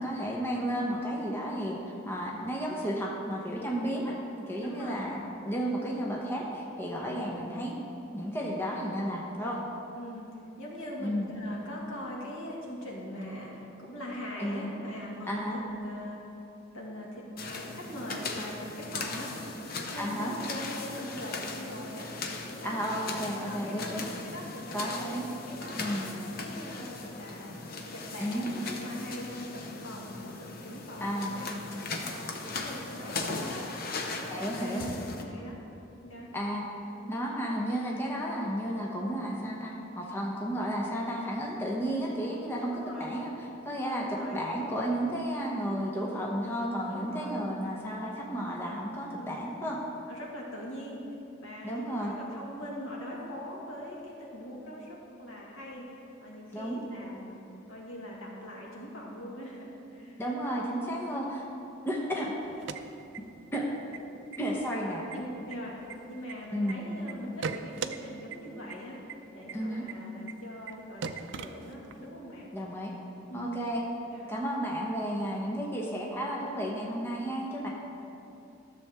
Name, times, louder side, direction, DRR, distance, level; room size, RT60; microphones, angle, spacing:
voice 1, 0.0-1.8 2.1-4.2 4.5-7.8 8.1-9.6 11.0-11.3 14.4-14.7 15.3-15.6 20.0-20.3 22.6-24.1 24.7-25.2 25.7-26.1 28.2-28.5 31.0-31.3 34.3-34.8 36.3-36.7 37.1-43.3 43.6-49.8 51.6-52.1 56.5-56.8 60.2-61.4 61.8-62.3 63.5-63.7 64.4-65.0 66.5-66.8 69.5-69.8 72.5-72.9 73.3-73.8 74.3-77.7, equal, 10° left, -3 dB, 0.9 m, -32 dB
voice 2, 4.6-5.1 10.0-16.2 16.7-22.1 22.5-22.8 23.1-25.0 25.5-27.5 27.9-33.6 34.1-35.6 36.0-36.3 37.0-37.2 42.6-43.1 43.8-44.4 46.9-47.4 49.1-49.3 50.1-51.0 51.4-60.2 64.9-65.8 66.1-69.0 69.3-72.5 73.3-73.7 74.1-74.3, equal, 80° left, -3 dB, 1.9 m, -42 dB
sound 1, 17.4-35.2, left 3 dB, 45° left, 0.8 m, -38 dB
sound 2, 62.4-63.6 63.9-64.0 64.3-64.8 65.1-66.7 67.1-68.0 68.3-68.4 68.7-68.8 69.1-69.2 69.5-69.6 69.9-70.0 70.3-70.4 70.7-70.8 71.0-72.0, right 6 dB, 60° right, 0.4 m, -38 dB
13.0 x 7.0 x 3.5 m, 2.8 s
head